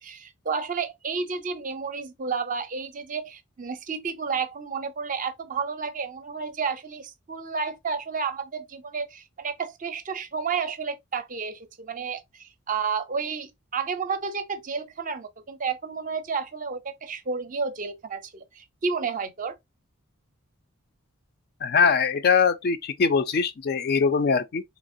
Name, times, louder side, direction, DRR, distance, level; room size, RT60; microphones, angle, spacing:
voice 1, 0.0-19.5, right 5 dB, 35° right, 0.5 m, -31 dB
voice 2, 21.6-24.6, left 5 dB, 45° left, 0.4 m, -22 dB
4.2 x 3.0 x 2.6 m
head